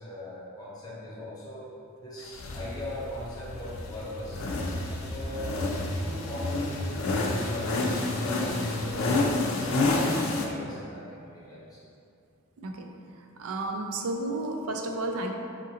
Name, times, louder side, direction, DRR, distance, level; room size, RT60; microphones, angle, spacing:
voice 1, 0.0-1.7 2.0-4.4 4.8-11.8, left 1 dB, 20° left, -7 dB, 0.8 m, -40 dB
sound 1, 2.3-10.5, left 2 dB, 75° left, 0.5 m, -29 dB
voice 2, 13.4-15.3, right 2 dB, 80° right, 3 dB, 0.4 m, -32 dB
4.9 x 2.5 x 2.8 m, 2.5 s
head